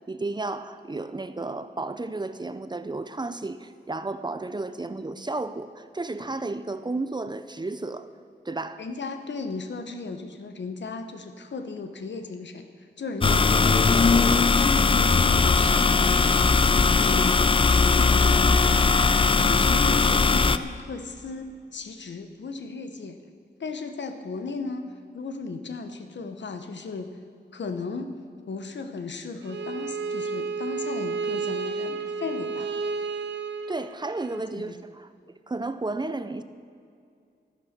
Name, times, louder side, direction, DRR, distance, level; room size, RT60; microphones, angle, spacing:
voice 1, 0.1-8.1 8.4-8.8 13.2-13.4 33.7-35.1 35.5-36.4, right 2 dB, 25° right, 11 dB, 0.5 m, -32 dB
voice 2, 8.8-12.7 13.0-18.6 19.4-23.2 23.6-24.8 25.1-27.1 27.5-28.2 28.5-32.7 34.5-34.8, left 4 dB, 85° left, 7 dB, 1.0 m, -35 dB
sound 1, 13.2-20.6, left 4 dB, 30° left, 0.4 m, -19 dB
Bowed string instrument, 29.4-34.4, right 4 dB, 90° right, 0.6 m, -31 dB
12.0 x 10.0 x 6.6 m, 2.4 s
wide cardioid pair, 105°, 18 cm